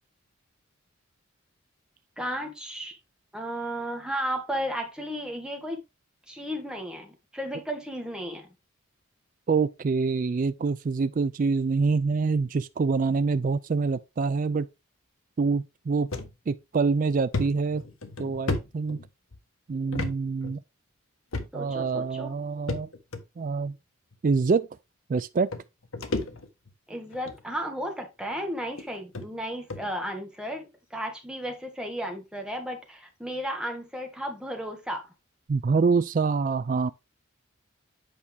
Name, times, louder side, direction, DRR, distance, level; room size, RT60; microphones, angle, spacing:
voice 1, 2.2-3.0 3.3-5.8 6.3-8.5 21.5-22.4 26.9-35.1, equal, 5° right, 1.7 m, -34 dB
voice 2, 9.5-14.7 15.4-16.1 16.5-17.8 18.2-19.0 19.7-20.6 21.5-22.9 23.4-23.7 24.2-24.7 25.1-25.5 35.5-36.9, right 4 dB, 40° right, 0.3 m, -25 dB
sound 1, 16.1-16.3 16.7-16.8 17.3-19.4 19.9-20.1 20.4-20.6 21.3-21.8 22.7-23.2 24.1-24.2 25.2-25.3 25.5-26.7 27.1-27.4 28.2-28.3 28.8-28.9 29.1-29.3 29.7-29.9, left 3 dB, 75° left, 1.3 m, -32 dB
8.5 x 5.8 x 3.5 m
head